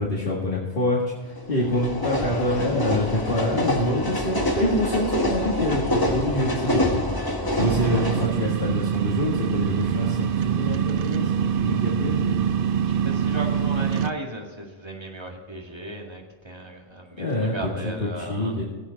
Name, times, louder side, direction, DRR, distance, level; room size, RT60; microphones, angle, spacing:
voice 1, 0.0-7.0 7.5-12.4 17.2-17.5 17.8-17.9 18.2-18.6, left 1 dB, 50° left, -5 dB, 2.1 m, -26 dB
sound 1, 1.4-8.3, left 1 dB, 20° left, 1.2 m, -26 dB
voice 2, 7.4-7.9 11.2-11.6 12.9-18.6, right 1 dB, 25° right, 0 dB, 1.9 m, -37 dB
sound 2, 7.6-14.1, right 8 dB, 60° right, 0.7 m, -24 dB
18.0 x 8.1 x 4.1 m, 1.4 s
omnidirectional pair, 1.1 m